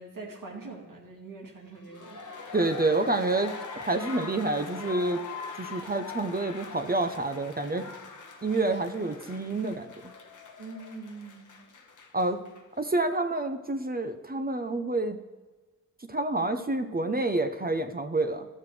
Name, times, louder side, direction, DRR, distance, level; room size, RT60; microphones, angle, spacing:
voice 1, 0.0-2.6 10.6-11.6, right 3 dB, 80° right, -2 dB, 2.1 m, -43 dB
sound 1, 1.8-12.6 12.9-13.0, left 4 dB, 65° left, 1.0 m, -42 dB
voice 2, 2.5-5.2 5.6-7.9 8.4-9.9 12.1-12.4 12.8-15.2 16.1-18.5, right 2 dB, 30° right, 7 dB, 0.7 m, -28 dB
12.0 x 7.4 x 3.2 m, 1.3 s
cardioid pair, 55°, 32 cm